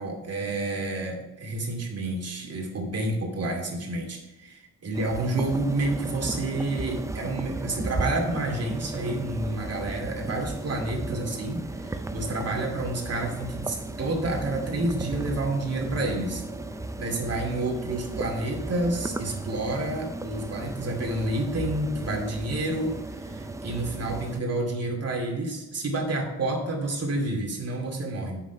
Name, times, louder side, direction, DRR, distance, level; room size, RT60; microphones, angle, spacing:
voice 1, 0.0-16.4 17.0-28.4, right 2 dB, 40° right, 1 dB, 2.4 m, -29 dB
sound 1, 4.9-24.4, right 2 dB, 10° right, 0.4 m, -35 dB
8.4 x 6.1 x 5.5 m, 1.1 s
cardioid pair, 125°, 38 cm